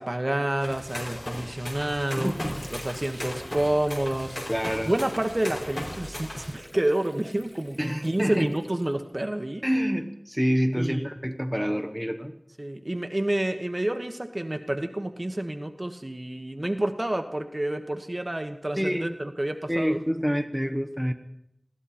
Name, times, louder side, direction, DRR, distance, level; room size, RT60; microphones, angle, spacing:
voice 1, 0.0-2.3 2.7-4.4 4.8-9.6 10.7-11.1 12.6-20.0, right 1 dB, 45° right, 6 dB, 1.3 m, -29 dB
sound 1, 0.6-6.5, left 1 dB, 70° left, 4.3 m, -37 dB
Water / Sink (filling or washing), 1.7-9.3, equal, 20° left, 2.0 m, -48 dB
voice 2, 2.2-2.7 4.5-4.9 7.8-8.5 9.6-12.3 18.8-19.1 19.7-21.1, equal, ahead, 5 dB, 1.1 m, -27 dB
20.5 x 15.0 x 4.3 m, 0.78 s
wide cardioid pair, 40°, 0 cm